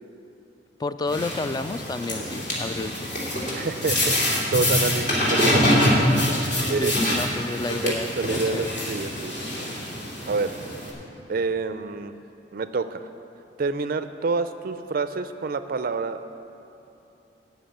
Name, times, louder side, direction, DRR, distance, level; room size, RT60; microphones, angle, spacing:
voice 1, 0.8-3.1 6.5-8.7, left 3 dB, 20° left, 12 dB, 0.3 m, -31 dB
sound 1, 1.1-10.9, left 1 dB, 45° left, 2.8 m, -25 dB
voice 2, 3.5-6.1 6.7-7.2 7.8-9.3 10.3-10.6 11.3-12.2 12.5-13.1 13.6-16.2, right 4 dB, 55° right, 11 dB, 0.4 m, -28 dB
12.5 x 6.1 x 8.8 m, 3.0 s
head